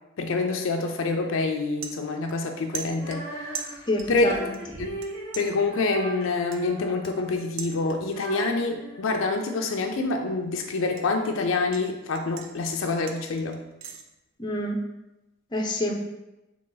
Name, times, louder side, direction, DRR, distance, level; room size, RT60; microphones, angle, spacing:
voice 1, 0.2-3.3 4.1-4.4 4.8-4.9 5.3-13.7, left 3 dB, 85° left, 4 dB, 0.5 m, -26 dB
sound 1, 1.0-1.1 1.5-2.5 2.7-4.2 4.5-5.1 5.3-8.3 8.6-9.0 9.4-11.8 12.1-14.0, right 6 dB, 90° right, 0.5 m, -41 dB
Female singing, 2.9-10.0, right 1 dB, 55° right, 1.0 m, -39 dB
voice 2, 3.9-4.5 14.4-14.8 15.5-15.9, left 1 dB, 20° left, 1 dB, 0.5 m, -27 dB
3.8 x 3.0 x 3.9 m, 0.96 s
head